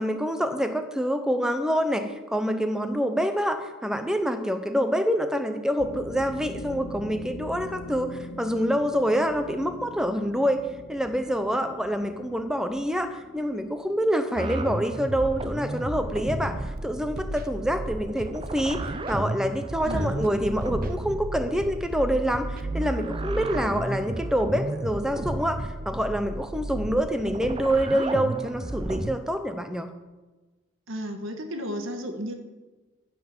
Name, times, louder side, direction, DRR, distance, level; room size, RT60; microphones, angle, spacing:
voice 1, 0.0-10.6 10.9-16.5 16.8-29.9, equal, 5° right, 7 dB, 0.8 m, -26 dB
sound 1, 5.8-16.0, left 1 dB, 45° left, 0.9 m, -43 dB
sound 2, 14.4-29.2, right 2 dB, 25° right, 0.5 m, -33 dB
Scratching (performance technique), 16.4-16.8 17.2-17.5 18.2-18.5 18.9-19.2 19.9-20.3 20.6-20.9 21.6-21.9 22.3-22.6, right 2 dB, 45° right, 0.9 m, -38 dB
voice 2, 19.8-20.2 30.9-32.3, equal, 75° right, 6 dB, 1.6 m, -33 dB
15.0 x 6.0 x 7.3 m, 1.2 s
head